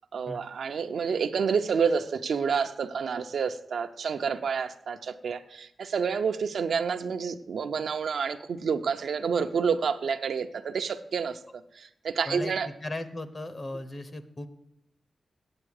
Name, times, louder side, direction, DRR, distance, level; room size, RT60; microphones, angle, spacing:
voice 1, 0.1-12.7, right 6 dB, 75° right, 0.6 m, -29 dB
voice 2, 12.2-14.5, left 2 dB, 35° left, 0.8 m, -37 dB
8.8 x 7.9 x 6.5 m
wide cardioid pair, 135°, 0 cm